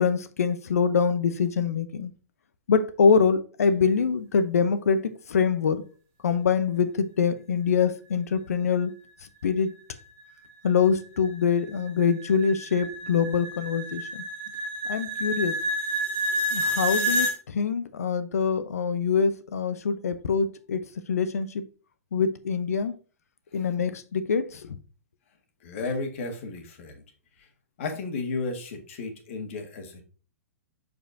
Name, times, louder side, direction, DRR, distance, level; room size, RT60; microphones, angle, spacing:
voice 1, 0.0-2.1 2.7-5.8 6.2-8.9 9.4-9.7 10.6-14.2 14.8-15.5 16.5-21.6 22.1-22.9 23.5-24.8, left 6 dB, 70° left, 0.7 m, -24 dB
sound 1, 10.2-17.4, equal, 35° right, 1.9 m, -29 dB
voice 2, 25.6-27.0 27.4-27.5 27.8-30.0, left 3 dB, 55° left, 1.7 m, -33 dB
6.9 x 5.2 x 2.7 m
figure-of-eight pair, 115°, 9 cm